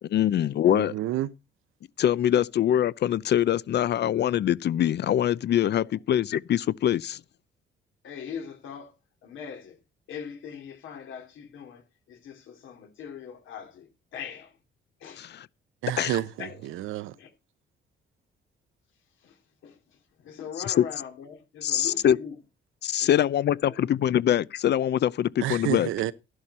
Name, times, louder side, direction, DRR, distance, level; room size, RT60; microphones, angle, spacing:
voice 1, 0.0-0.9 2.0-7.2 15.2-15.3 16.0-16.2 20.7-20.8 21.6-22.2 22.8-25.9, left 10 dB, 60° left, 0.7 m, -23 dB
voice 2, 0.6-1.3 15.8-17.2 25.4-26.1, right 14 dB, 90° right, 0.9 m, -30 dB
voice 3, 8.0-8.9 9.2-9.8 10.1-14.6 15.0-15.3 16.4-16.8 17.2-17.3 19.2-22.3 23.0-24.1, left 7 dB, 80° left, 3.1 m, -41 dB
13.5 x 11.5 x 4.3 m
cardioid pair, 90°, 20 cm